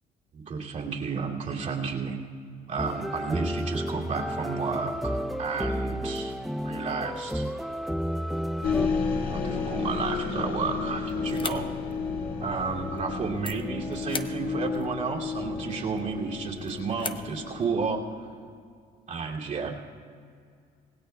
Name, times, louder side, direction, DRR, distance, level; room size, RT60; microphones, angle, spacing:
voice 1, 0.3-2.2 2.7-6.4 6.6-7.5 9.3-11.7 12.4-18.3 19.1-19.8, right 5 dB, 50° right, -3 dB, 2.7 m, -32 dB
sound 1, 2.8-8.9, equal, ahead, 0.5 m, -31 dB
sound 2, 8.6-18.3, left 4 dB, 65° left, 2.0 m, -32 dB
sound 3, 11.0-17.7, left 5 dB, 30° left, 0.8 m, -42 dB
26.0 x 18.5 x 2.3 m, 2.3 s
cardioid pair, 110°, 17 cm